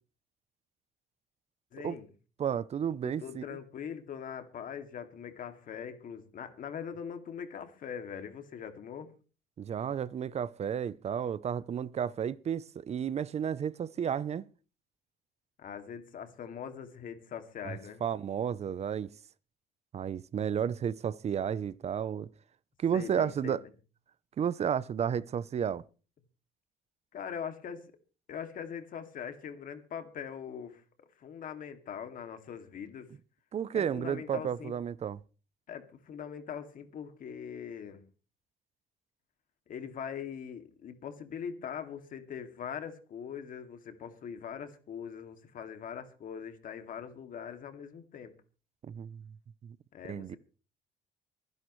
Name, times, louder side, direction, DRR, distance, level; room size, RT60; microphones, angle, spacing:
voice 1, 1.7-2.1 3.0-9.1 15.6-18.0 22.9-23.6 27.1-27.8 28.3-30.8 31.2-33.1 33.7-34.7 35.7-38.0 39.7-48.3 49.9-50.4, left 7 dB, 55° left, 2.4 m, -42 dB
voice 2, 2.4-3.4 9.6-14.4 17.6-19.1 19.9-22.3 22.8-23.6 24.4-25.8 33.5-35.2 48.8-49.2 49.6-49.8 50.1-50.4, right 8 dB, 40° right, 0.6 m, -32 dB
25.5 x 11.0 x 3.2 m
cardioid pair, 110°, 17 cm